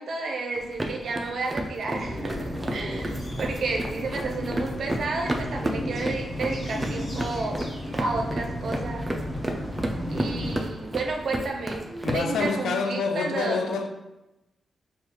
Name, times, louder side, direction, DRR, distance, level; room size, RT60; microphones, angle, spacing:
voice 1, 0.0-7.6 8.0-9.0 10.1-11.8 12.1-13.6, right 3 dB, 70° right, 0.6 m, -31 dB
sound 1, 0.6-12.5, right 1 dB, 15° right, 0.4 m, -33 dB
sound 2, 2.0-10.6, equal, 40° left, 1.1 m, -33 dB
voice 2, 12.0-13.9, left 4 dB, 90° left, 0.4 m, -27 dB
4.5 x 2.4 x 2.9 m
cardioid pair, 95°, 0 cm